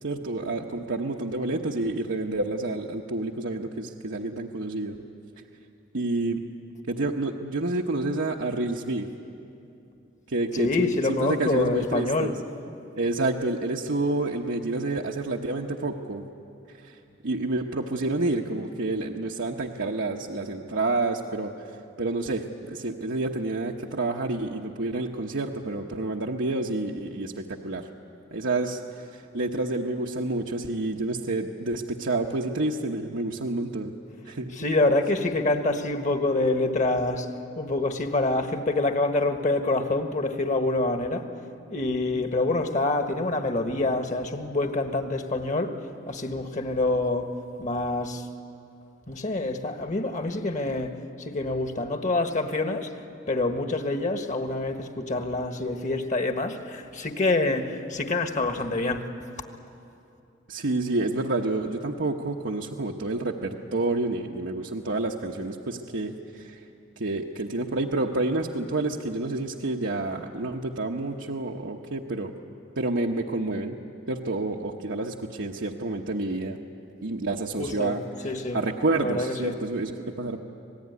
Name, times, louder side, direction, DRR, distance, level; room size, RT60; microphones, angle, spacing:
voice 1, 0.0-5.0 5.9-6.4 6.9-9.1 10.3-12.3 13.0-16.2 16.8-17.0 17.2-27.9 28.3-33.9 34.2-34.5 41.9-42.3 60.5-66.6 67.0-72.4 72.8-73.8 74.1-76.6 77.0-78.0 78.5-80.4, right 2 dB, 85° right, 1.1 m, -29 dB
voice 2, 10.6-12.3 34.5-37.3 37.6-41.3 41.7-45.8 46.1-48.3 49.1-52.9 53.3-59.1 77.6-78.6 79.0-79.6, left 2 dB, 40° left, 1.6 m, -26 dB
26.5 x 18.5 x 9.6 m
head